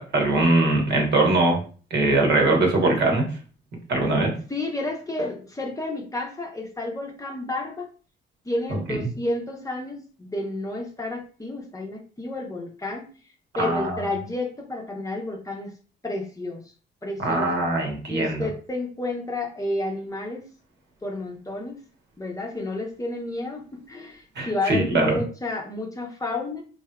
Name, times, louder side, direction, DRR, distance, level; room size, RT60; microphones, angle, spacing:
voice 1, 0.1-1.6 1.9-3.3 3.9-4.3 13.6-14.0 17.2-18.5 24.4-25.2, right 2 dB, 60° right, 1 dB, 1.1 m, -21 dB
voice 2, 4.5-7.9 8.4-13.1 13.6-15.7 16.0-16.6 17.0-17.5 18.1-20.5 21.0-21.8 22.2-26.6, left 2 dB, 15° left, 0 dB, 0.7 m, -31 dB
3.4 x 2.7 x 2.2 m, 0.38 s
cardioid pair, 90°, 20 cm